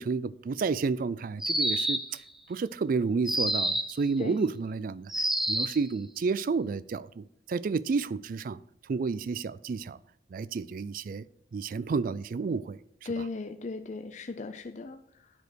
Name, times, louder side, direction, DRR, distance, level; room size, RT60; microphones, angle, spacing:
voice 1, 0.0-2.2 2.5-5.1 5.5-8.6 8.9-10.0 10.3-11.2 11.5-12.8 13.2-13.3, right 4 dB, 50° right, 0.3 m, -31 dB
sound 1, 1.4-2.2 3.3-4.0 5.1-5.8, right 1 dB, ahead, 0.6 m, -28 dB
voice 2, 13.1-15.3, left 3 dB, 40° left, 0.5 m, -37 dB
9.3 x 5.0 x 6.1 m
head